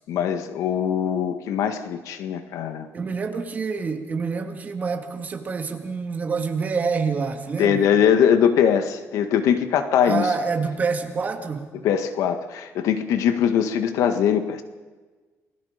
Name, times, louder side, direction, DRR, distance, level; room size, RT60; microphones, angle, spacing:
voice 1, 0.1-2.9 7.6-10.3 11.8-14.6, left 8 dB, 80° left, 8 dB, 1.7 m, -21 dB
voice 2, 2.9-7.9 10.0-11.7, right 5 dB, 30° right, 5 dB, 2.1 m, -27 dB
28.5 x 20.5 x 5.2 m, 1.3 s
cardioid pair, 140°, 5 cm